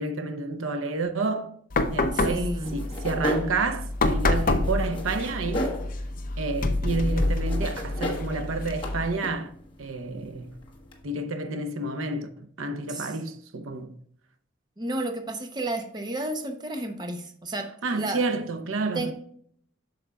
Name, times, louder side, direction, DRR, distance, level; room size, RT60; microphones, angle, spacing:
voice 1, 0.0-1.5 1.9-5.8 6.4-9.5 9.8-10.6 11.0-14.0 17.8-19.1, right 3 dB, 85° right, 0.7 m, -30 dB
sound 1, 1.7-9.2, left 2 dB, 45° left, 0.5 m, -27 dB
voice 2, 2.1-2.8 12.9-13.1 14.8-18.2 18.9-19.1, right 1 dB, 20° right, 0.7 m, -32 dB
sound 2, 2.6-11.0, left 1 dB, 25° left, 1.2 m, -36 dB
8.3 x 6.3 x 2.3 m
head